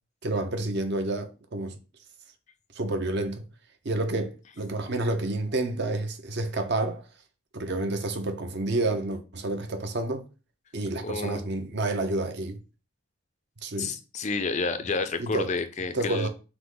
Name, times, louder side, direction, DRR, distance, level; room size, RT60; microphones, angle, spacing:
voice 1, 0.2-1.8 2.8-3.4 3.8-7.0 7.5-10.2 10.7-12.6 13.6-13.9 15.2-15.5 15.9-16.3, right 2 dB, 50° right, 0.7 m, -29 dB
voice 2, 11.0-11.6 13.8-16.3, left 4 dB, 35° left, 0.4 m, -30 dB
5.7 x 2.1 x 3.8 m
head